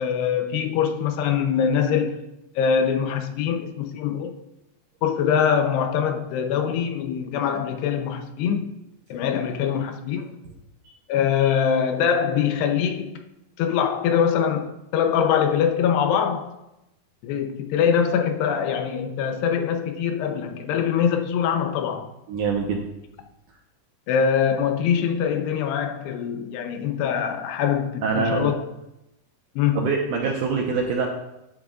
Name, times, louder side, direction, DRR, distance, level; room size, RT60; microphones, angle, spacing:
voice 1, 0.0-2.2 2.6-4.3 5.0-8.7 9.1-10.4 11.1-13.2 13.6-16.5 17.2-22.1 24.1-28.6 29.6-29.9, left 7 dB, 80° left, 2.8 m, -23 dB
voice 2, 22.3-22.8 28.0-28.5 29.8-31.1, right 5 dB, 80° right, 1.8 m, -24 dB
11.5 x 11.0 x 2.5 m
omnidirectional pair, 4.9 m